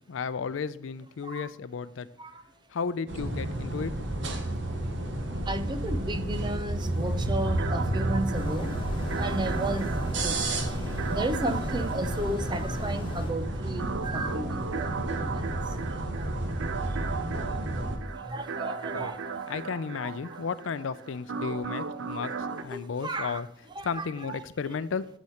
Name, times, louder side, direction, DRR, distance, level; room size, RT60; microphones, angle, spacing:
voice 1, 0.1-2.1 2.7-3.9 18.9-19.1 19.5-23.5 23.8-25.1, left 5 dB, 90° left, 0.4 m, -33 dB
sound 1, 3.1-18.0, right 1 dB, 70° right, 1.0 m, -31 dB
voice 2, 5.5-8.8 9.1-10.6 11.1-15.4 17.8-17.9 18.2-19.6 20.0-20.1 22.7-23.4 23.8-24.4, right 1 dB, 25° right, 0.5 m, -34 dB
sound 2, 7.4-22.6, right 5 dB, 90° right, 0.5 m, -37 dB
sound 3, 8.3-13.3, left 1 dB, 25° left, 1.2 m, -40 dB
8.1 x 6.5 x 4.2 m
head